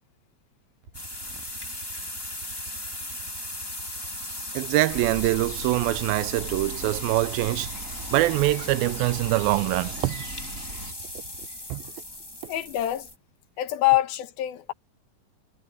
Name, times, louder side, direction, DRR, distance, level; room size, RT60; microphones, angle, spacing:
Aircraft, 0.8-11.5, right 4 dB, 70° right, 9.0 m, -49 dB
sound 1, 0.9-13.1, left 1 dB, 10° left, 1.6 m, -37 dB
voice 1, 4.5-7.7 8.1-10.2 11.7-11.8, right 18 dB, 90° right, 2.4 m, -24 dB
sound 2, 4.9-10.9, right 2 dB, 20° right, 5.7 m, -40 dB
voice 2, 12.4-13.1 13.6-14.7, left 15 dB, 90° left, 3.1 m, -25 dB
omnidirectional pair, 4.2 m